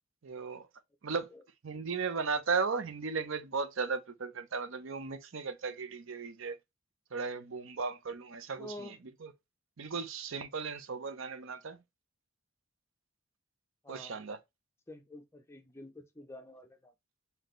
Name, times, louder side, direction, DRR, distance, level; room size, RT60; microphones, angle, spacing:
voice 1, 0.2-0.7 1.0-1.3 1.6-6.6 7.1-8.9 9.2-9.3 9.8-11.8 13.9-14.4, right 5 dB, 60° right, 0.6 m, -36 dB
voice 2, 8.6-9.0 13.8-14.2 14.9-16.9, left 1 dB, 10° left, 0.5 m, -48 dB
4.2 x 2.7 x 3.1 m
head